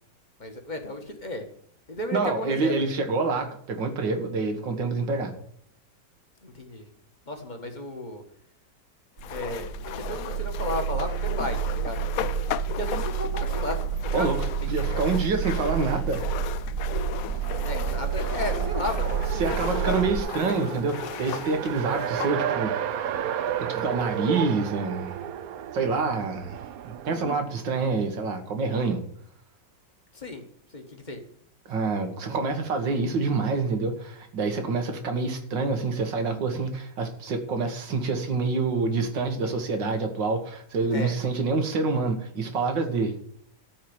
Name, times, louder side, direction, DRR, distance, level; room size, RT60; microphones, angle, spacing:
voice 1, 0.4-1.5 1.9-2.7 6.4-6.9 7.3-8.2 9.3-12.0 12.7-14.3 14.6-14.7 17.6-19.4 19.7-20.0 30.1-30.4 30.7-31.2 40.9-41.2, left 2 dB, 25° left, 4 dB, 1.5 m, -34 dB
voice 2, 2.1-5.3 14.1-16.2 19.4-22.8 23.7-25.2 25.7-29.0 31.7-43.1, right 4 dB, 90° right, 5 dB, 2.2 m, -27 dB
sound 1, 9.2-22.4, left 10 dB, 70° left, 0.9 m, -36 dB
sound 2, 9.2-20.2, right 8 dB, 45° right, 1.6 m, -29 dB
Race car auto racing, 17.3-27.4, right 9 dB, 65° right, 0.9 m, -33 dB
13.0 x 4.7 x 8.6 m, 0.66 s
omnidirectional pair, 1.9 m